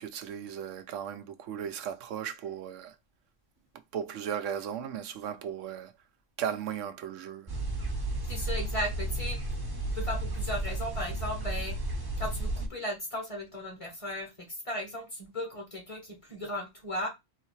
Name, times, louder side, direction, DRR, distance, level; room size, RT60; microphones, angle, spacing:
voice 1, 0.0-3.0 3.9-5.9 6.4-7.5, right 9 dB, 85° right, 1.0 m, -36 dB
sound 1, 7.5-12.7, right 2 dB, 25° right, 0.6 m, -33 dB
voice 2, 8.2-9.4 9.9-11.7 12.2-17.1, left 1 dB, 30° left, 1.1 m, -36 dB
4.0 x 3.2 x 3.1 m
omnidirectional pair, 1.3 m